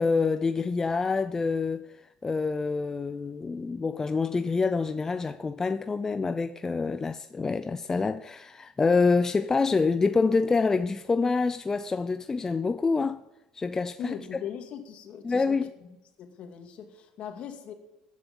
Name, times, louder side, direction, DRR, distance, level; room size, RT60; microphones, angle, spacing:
voice 1, 0.0-1.9 2.2-13.2 13.5-14.1 15.2-15.7, left 4 dB, 20° left, 0.5 m, -26 dB
voice 2, 14.0-15.9 16.2-17.7, left 8 dB, 55° left, 2.4 m, -40 dB
15.0 x 10.5 x 5.5 m
supercardioid pair, 90°, 2 cm